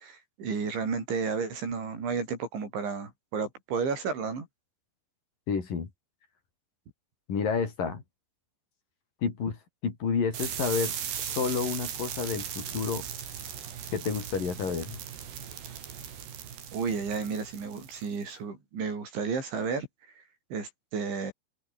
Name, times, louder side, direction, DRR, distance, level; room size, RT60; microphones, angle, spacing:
voice 1, 0.0-4.5 16.7-19.9 20.5-21.3, right 5 dB, 90° right, 9.1 m, -32 dB
voice 2, 5.5-5.9 7.3-8.0 9.2-13.1 13.9-15.0, left 5 dB, 50° left, 5.3 m, -30 dB
sound 1, 10.3-18.2, right 8 dB, 70° right, 5.4 m, -38 dB
omnidirectional pair, 5.1 m